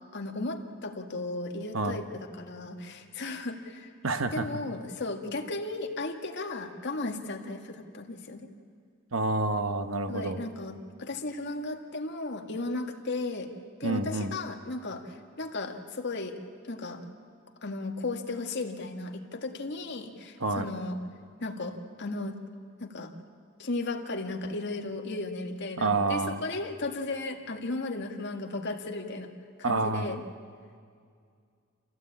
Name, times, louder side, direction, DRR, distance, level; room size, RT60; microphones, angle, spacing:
voice 1, 0.1-3.9 4.3-8.5 10.1-13.5 13.8-16.4 16.6-17.0 17.6-21.0 21.4-22.3 22.8-23.1 23.6-29.3 29.6-30.2, left 2 dB, 60° left, 3 dB, 1.8 m, -35 dB
voice 2, 4.0-4.5 9.1-10.4 13.8-14.3 20.4-20.7 25.8-26.4 29.6-30.2, right 3 dB, 70° right, 8 dB, 1.2 m, -28 dB
27.0 x 16.0 x 8.7 m, 2.2 s
head